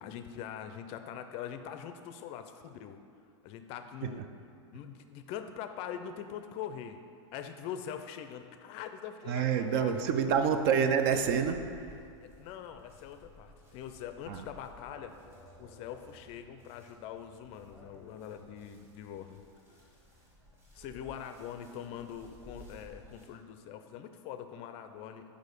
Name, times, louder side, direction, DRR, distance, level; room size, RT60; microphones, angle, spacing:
voice 1, 0.0-3.0 3.4-4.2 4.7-7.0 7.3-10.1 12.2-15.2 15.6-19.4 20.7-25.2, left 9 dB, 40° left, 8 dB, 0.4 m, -43 dB
voice 2, 9.2-12.0 14.3-14.5, right 7 dB, 50° right, 8 dB, 0.5 m, -28 dB
sound 1, 9.5-23.3, equal, 15° right, 1.7 m, -56 dB
6.3 x 4.9 x 5.2 m, 2.4 s
hypercardioid pair, 130°, 15 cm